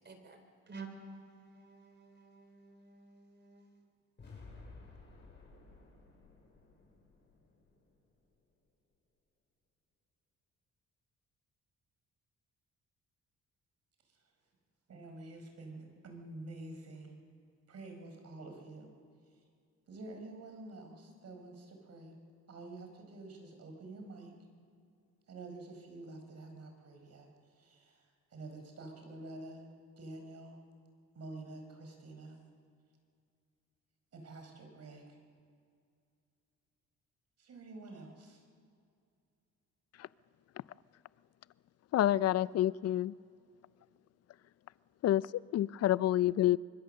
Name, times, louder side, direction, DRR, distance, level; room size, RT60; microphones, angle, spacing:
voice 1, 0.0-3.8, right 4 dB, 35° right, 6 dB, 4.0 m, -51 dB
sound 1, 4.2-8.3, left 3 dB, 35° left, 6.2 m, -55 dB
voice 2, 14.9-17.2 17.7-18.9 19.9-22.2 22.5-24.3 25.3-29.7 30.0-30.6 31.1-32.4 34.1-35.2 37.4-38.4, right 2 dB, 55° right, 4 dB, 4.9 m, -48 dB
voice 3, 41.9-43.1 45.0-46.6, left 13 dB, 55° left, 20 dB, 0.5 m, -28 dB
25.0 x 21.5 x 6.6 m, 2.3 s
cardioid pair, 90°, 30 cm